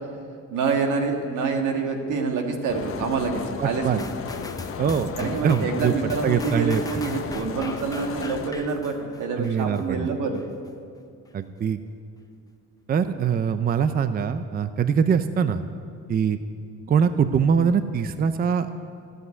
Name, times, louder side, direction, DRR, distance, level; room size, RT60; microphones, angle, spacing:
voice 1, 0.5-4.0 5.2-10.4, right 4 dB, 80° right, 3 dB, 1.8 m, -26 dB
sound 1, 2.7-8.5, left 7 dB, 45° left, 0.9 m, -35 dB
voice 2, 3.6-4.0 4.8-5.9 6.2-7.0 9.4-10.2 11.3-11.8 12.9-15.6 16.1-16.4 16.9-18.7, right 7 dB, 30° right, 11 dB, 0.5 m, -23 dB
sound 2, 4.0-9.8 10.3-10.4, left 3 dB, 10° left, 0.8 m, -40 dB
14.0 x 7.8 x 9.5 m, 2.3 s
cardioid pair, 135°, 30 cm